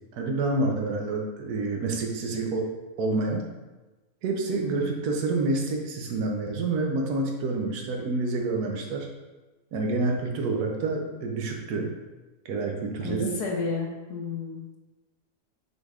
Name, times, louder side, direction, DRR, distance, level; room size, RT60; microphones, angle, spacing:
voice 1, 0.1-2.7 3.0-3.4 4.2-9.1 9.7-11.9 12.4-13.3, right 3 dB, 80° right, 1 dB, 1.2 m, -28 dB
voice 2, 13.0-14.8, left 4 dB, 85° left, 0 dB, 1.4 m, -32 dB
6.2 x 3.4 x 2.4 m, 1.1 s
omnidirectional pair, 1.6 m